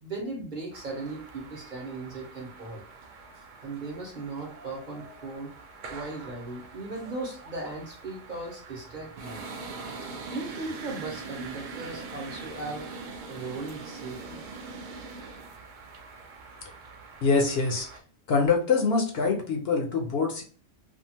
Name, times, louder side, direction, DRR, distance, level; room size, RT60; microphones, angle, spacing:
voice 1, 0.0-2.8 3.6-5.5 5.9-9.4 10.3-12.9 13.3-14.4, right 3 dB, 45° right, -1 dB, 0.9 m, -37 dB
sound 1, 0.7-18.0, right 4 dB, 60° right, 0.5 m, -43 dB
voice 2, 17.2-17.9 18.3-20.4, left 4 dB, 65° left, 3 dB, 0.8 m, -24 dB
2.7 x 2.4 x 2.7 m, 0.42 s
omnidirectional pair, 1.3 m